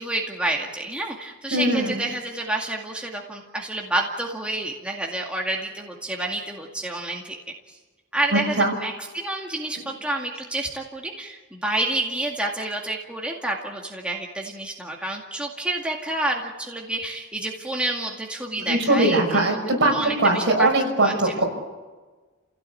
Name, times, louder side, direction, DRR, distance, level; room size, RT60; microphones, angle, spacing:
voice 1, 0.0-7.4 7.7-7.8 8.1-19.5 19.9-20.7 21.0-21.4, right 2 dB, 5° right, -1 dB, 2.2 m, -29 dB
voice 2, 1.5-1.9 8.3-8.7 18.7-19.9 20.2-21.4, right 2 dB, 60° right, 1 dB, 6.4 m, -20 dB
29.0 x 17.0 x 8.6 m, 1.3 s
head